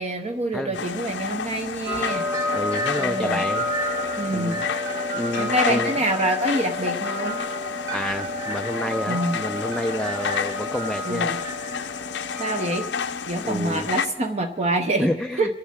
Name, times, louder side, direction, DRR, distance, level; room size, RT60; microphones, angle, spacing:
voice 1, 0.0-2.3 2.9-3.4 4.2-4.6 5.4-7.4 9.1-9.4 11.0-11.4 12.4-12.9 13.3-15.1 15.4-15.6, right 1 dB, 35° right, 5 dB, 0.8 m, -26 dB
sound 1, 0.7-14.1, left 6 dB, 70° left, 0.6 m, -30 dB
sound 2, 1.9-12.9, left 1 dB, 15° right, 1.3 m, -31 dB
voice 2, 2.5-3.6 4.3-4.6 5.1-5.9 7.9-11.3 13.4-13.9 15.0-15.5, left 1 dB, 5° left, 5 dB, 0.4 m, -29 dB
28.0 x 11.5 x 3.6 m, 1.3 s
head